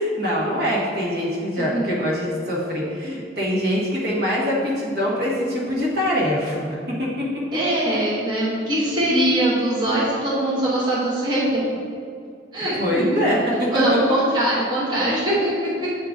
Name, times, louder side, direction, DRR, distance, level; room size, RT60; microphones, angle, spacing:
voice 1, 0.0-7.6 7.9-8.0 8.8-8.9 12.8-14.0, equal, 65° right, -5 dB, 1.5 m, -24 dB
voice 2, 7.5-11.6 12.5-13.2 13.7-15.9, right 1 dB, 25° right, -8 dB, 1.1 m, -22 dB
8.0 x 3.7 x 3.8 m, 2.4 s
head